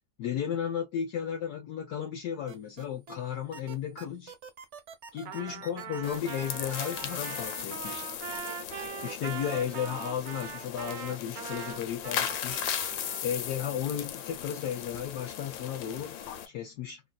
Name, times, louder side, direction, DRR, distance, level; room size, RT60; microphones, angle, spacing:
voice 1, 0.2-4.3 5.1-8.1 9.0-12.6 13.2-16.2 16.5-17.0, left 9 dB, 65° left, 1.1 m, -34 dB
sound 1, 2.5-3.2 3.5-7.9 8.3-9.7, right 5 dB, 50° right, 0.9 m, -46 dB
Trumpet, 5.2-13.3, right 9 dB, 75° right, 1.2 m, -42 dB
sound 2, 6.0-16.5, left 9 dB, 90° left, 1.4 m, -37 dB
3.1 x 2.5 x 2.2 m
omnidirectional pair, 2.0 m